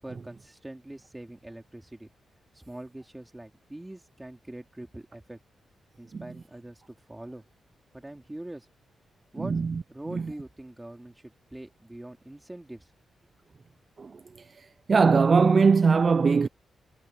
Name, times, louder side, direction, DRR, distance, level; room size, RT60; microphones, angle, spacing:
voice 1, 0.0-2.1 2.5-5.4 6.0-7.4 7.9-8.7 9.3-9.6 9.9-12.9, right 1 dB, 10° right, 3.1 m, -43 dB
voice 2, 9.4-9.7 10.1-10.2 14.0-14.1 14.9-16.5, right 5 dB, 35° right, 0.4 m, -20 dB
wide cardioid pair, 150°, 0 cm